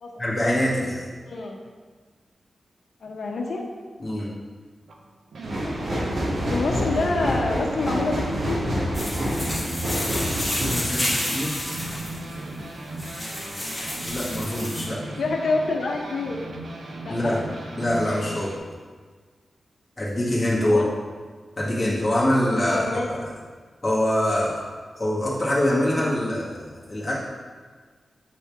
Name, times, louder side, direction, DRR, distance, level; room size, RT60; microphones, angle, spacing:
voice 1, 0.2-1.0 4.0-4.3 10.6-11.7 14.0-15.0 17.1-17.5 17.8-18.6 20.0-20.8 21.6-23.3 23.8-24.6 25.0-27.1, left 1 dB, 25° left, -8 dB, 1.9 m, -24 dB
voice 2, 1.3-1.6 3.0-3.6 6.4-8.6 15.2-16.4 17.0-17.4 20.6-20.9 22.7-23.1, left 3 dB, 85° left, 1 dB, 0.9 m, -27 dB
sound 1, 4.9-18.6, right 2 dB, 85° right, 0.7 m, -37 dB
sound 2, 5.4-12.0 12.4-12.5, equal, 60° right, 1.5 m, -28 dB
sound 3, 8.9-14.8, left 1 dB, 10° left, 1.6 m, -30 dB
8.3 x 4.3 x 3.5 m, 1.5 s
wide cardioid pair, 140°, 0 cm